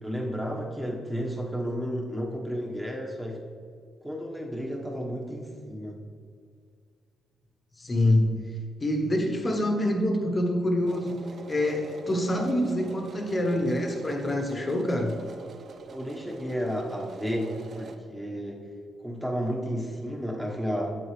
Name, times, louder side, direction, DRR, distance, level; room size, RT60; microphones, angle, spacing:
voice 1, 0.0-3.4 4.0-6.0 15.9-18.6 19.0-21.0, equal, 5° right, 0 dB, 1.3 m, -32 dB
voice 2, 7.8-8.4 8.8-11.2 11.5-15.2, left 1 dB, 25° left, 3 dB, 1.1 m, -26 dB
sound 1, 10.9-18.0, right 4 dB, 50° right, 0.6 m, -44 dB
8.7 x 8.0 x 3.3 m, 2.2 s
cardioid pair, 120°, 0 cm